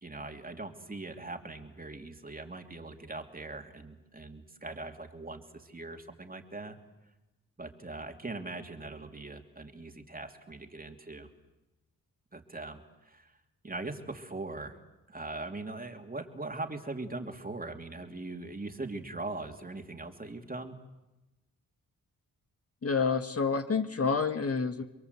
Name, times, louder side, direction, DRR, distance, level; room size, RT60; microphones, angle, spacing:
voice 1, 0.0-6.8 7.6-11.3 12.3-13.3 13.6-14.8 15.1-20.7, right 2 dB, 25° right, 5 dB, 2.9 m, -41 dB
voice 2, 22.8-24.8, left 5 dB, 40° left, 7 dB, 1.6 m, -28 dB
28.5 x 22.5 x 8.3 m, 1.0 s
cardioid pair, 85°, 36 cm